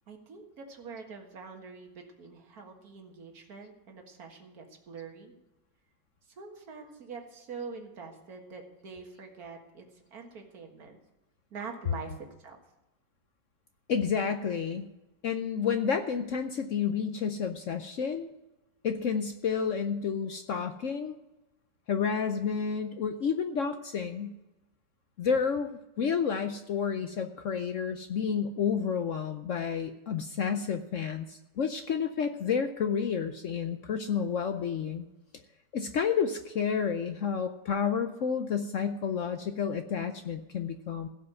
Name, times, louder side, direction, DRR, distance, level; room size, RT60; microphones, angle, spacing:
voice 1, 0.1-5.3 6.3-11.0 11.5-12.6, right 5 dB, 55° right, 3 dB, 2.1 m, -45 dB
voice 2, 13.9-14.9 15.2-18.3 18.8-21.2 21.9-24.3 25.2-35.1 35.7-41.1, left 6 dB, 65° left, 8 dB, 0.8 m, -30 dB
16.0 x 5.6 x 7.8 m, 1.0 s
omnidirectional pair, 1.9 m